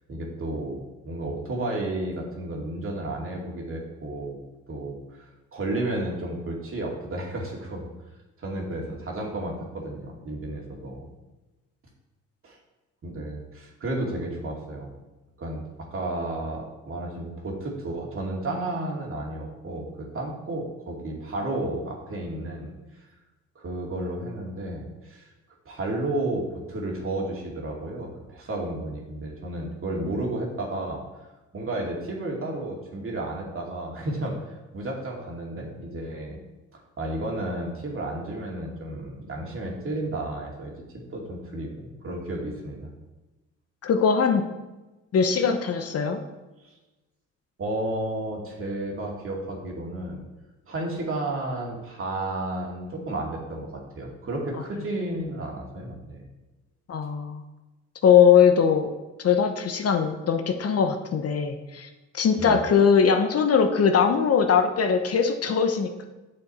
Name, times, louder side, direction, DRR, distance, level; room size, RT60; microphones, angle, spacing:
voice 1, 0.1-4.4 4.7-7.9 8.4-11.1 12.4-12.6 13.0-14.9 15.4-23.1 23.6-25.3 25.7-31.0 31.5-34.4 34.7-36.4 36.7-40.7 41.1-42.9 46.6-46.7 47.6-50.3 50.7-56.2 62.4-62.6, right 1 dB, 45° right, -1 dB, 2.3 m, -32 dB
voice 2, 43.8-44.5 45.1-46.2 56.9-57.4 58.0-58.9 59.2-61.9 62.1-66.1, left 7 dB, 55° left, 6 dB, 1.0 m, -21 dB
9.0 x 6.8 x 4.2 m, 1.1 s
cardioid pair, 90°, 30 cm